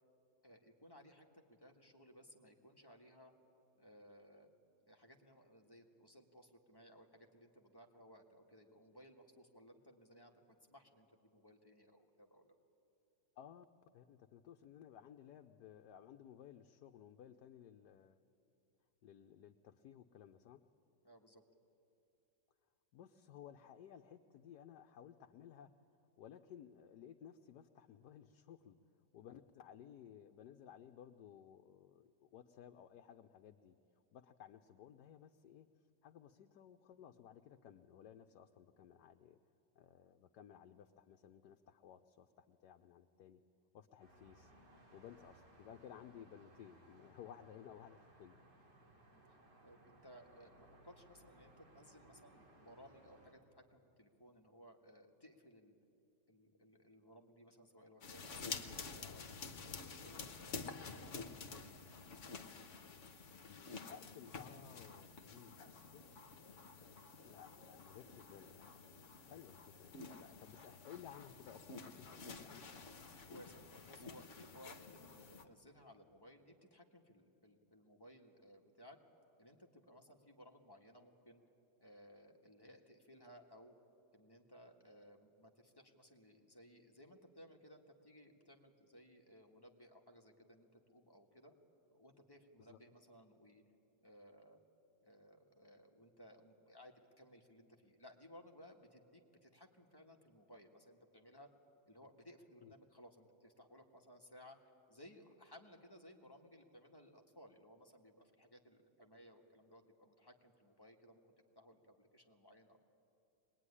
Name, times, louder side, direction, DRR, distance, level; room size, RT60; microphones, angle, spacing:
voice 1, 0.4-3.3 3.8-4.5 4.9-12.6 21.0-21.4 49.1-49.4 49.6-55.7 56.3-61.2 73.3-79.0 79.4-81.4 81.8-83.7 84.1-91.5 91.9-93.6 94.0-94.6 95.0-101.5 101.9-111.2 111.6-112.8, equal, 15° left, 1 dB, 1.6 m, -61 dB
voice 2, 13.9-18.2 19.0-20.6 22.9-25.7 26.2-28.8 29.1-33.7 34.1-35.7 36.0-39.4 39.7-43.4 43.7-44.5 44.9-48.4 63.4-66.4 67.2-68.9 69.2-72.7 92.7-92.8 102.6-102.7, left 9 dB, 75° left, 6 dB, 1.3 m, -57 dB
sound 1, 44.0-53.3, right 1 dB, 80° right, 3.6 m, -64 dB
sound 2, 58.0-75.4, left 4 dB, 50° left, 1.4 m, -50 dB
23.5 x 20.0 x 9.8 m, 2.8 s
omnidirectional pair, 1.8 m